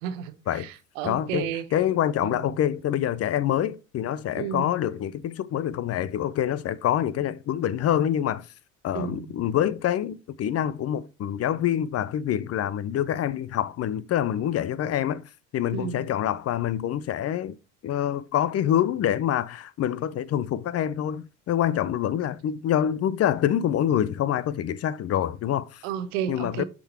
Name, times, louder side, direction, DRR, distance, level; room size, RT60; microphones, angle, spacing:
voice 1, 0.0-1.7 2.2-2.6 4.4-4.7 8.9-9.3 15.7-16.1 25.8-26.6, right 9 dB, 75° right, 0.9 m, -32 dB
voice 2, 1.0-8.5 8.8-15.2 15.5-17.5 17.8-25.8 26.3-26.6, left 10 dB, 40° left, 0.6 m, -26 dB
6.9 x 3.8 x 4.3 m
hypercardioid pair, 65°, 39 cm